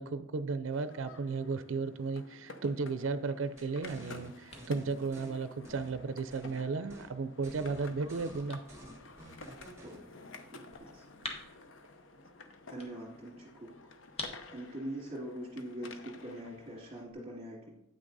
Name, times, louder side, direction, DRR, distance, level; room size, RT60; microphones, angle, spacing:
voice 1, 0.0-8.6, right 4 dB, 70° right, 12 dB, 0.5 m, -35 dB
sound 1, 0.7-17.1, left 3 dB, 65° left, 0.8 m, -52 dB
sound 2, 3.6-17.1, left 2 dB, 30° left, 1.2 m, -52 dB
sound 3, 3.6-5.3 5.6-6.6 6.9-7.1 7.4-10.0, equal, 15° right, 1.8 m, -51 dB
voice 2, 10.5-11.0 12.6-13.7 14.5-17.7, right 1 dB, 30° right, -6 dB, 2.3 m, -43 dB
8.8 x 6.2 x 4.0 m, 0.88 s
head